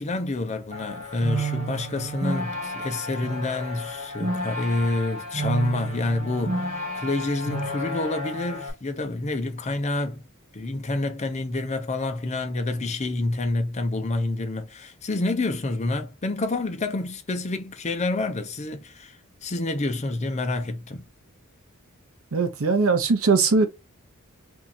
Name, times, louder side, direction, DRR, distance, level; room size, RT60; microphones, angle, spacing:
voice 1, 0.0-10.2 10.5-19.2 19.4-21.0, left 2 dB, 30° left, 0.6 m, -28 dB
sound 1, 0.7-8.7, right 1 dB, 30° right, 0.8 m, -31 dB
voice 2, 22.3-23.7, right 4 dB, 65° right, 0.7 m, -20 dB
2.7 x 2.4 x 4.0 m
head